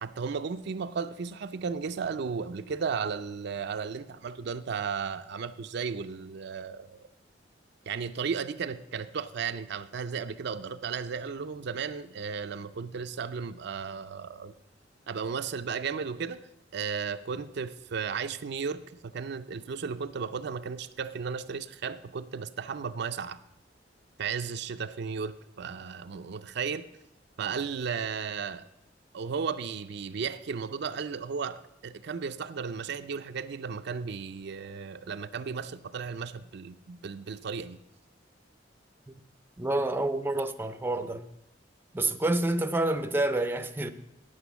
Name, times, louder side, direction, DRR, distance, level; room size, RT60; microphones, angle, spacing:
voice 1, 0.0-7.1 7.9-14.5 15.1-16.4 16.7-23.4 24.2-26.9 27.4-28.7 29.1-37.8, right 6 dB, 65° right, 0.5 m, -34 dB
voice 2, 39.6-41.3 41.9-43.9, right 2 dB, 10° right, 0.5 m, -28 dB
8.8 x 8.0 x 6.9 m
head